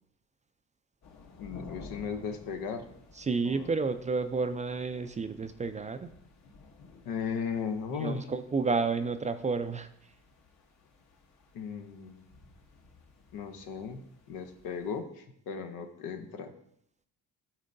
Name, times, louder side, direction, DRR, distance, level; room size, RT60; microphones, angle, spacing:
sound 1, 1.0-15.0, left 3 dB, 50° left, 1.1 m, -54 dB
voice 1, 1.4-2.9 3.4-3.7 7.0-8.3 11.5-12.2 13.3-16.5, left 6 dB, 85° left, 6 dB, 0.9 m, -36 dB
voice 2, 3.2-6.1 8.0-9.9, right 4 dB, 20° right, 10 dB, 0.4 m, -31 dB
11.0 x 4.3 x 2.6 m, 0.72 s
cardioid pair, 85°, 35 cm